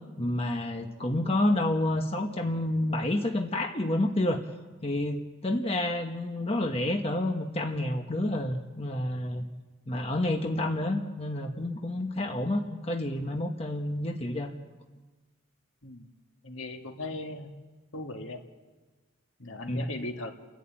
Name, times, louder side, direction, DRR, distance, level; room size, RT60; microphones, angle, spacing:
voice 1, 0.2-4.4 4.8-9.5 9.9-14.5 19.7-19.9, left 1 dB, 30° left, 3 dB, 1.1 m, -29 dB
voice 2, 16.4-17.5 17.9-18.4 19.4-20.3, left 2 dB, 70° left, 4 dB, 2.0 m, -38 dB
29.5 x 11.5 x 8.7 m, 1.3 s
head